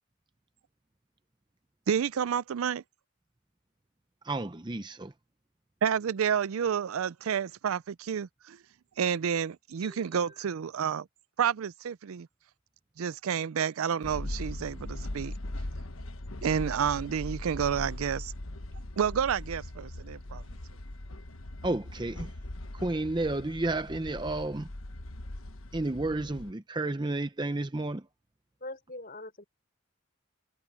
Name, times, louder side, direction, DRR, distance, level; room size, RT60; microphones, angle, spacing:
voice 1, 1.9-2.8 5.8-8.6 9.0-11.1 11.4-12.3 13.0-15.3 16.4-18.3 19.0-20.4, right 7 dB, 90° right, 0.4 m, -30 dB
voice 2, 4.2-5.1 9.8-10.0 21.6-22.3 22.7-24.7 25.7-28.1, right 2 dB, 20° right, 0.6 m, -31 dB
sound 1, 14.0-26.5, left 1 dB, 85° left, 1.3 m, -40 dB
voice 3, 28.6-29.4, left 2 dB, 45° left, 6.3 m, -42 dB
head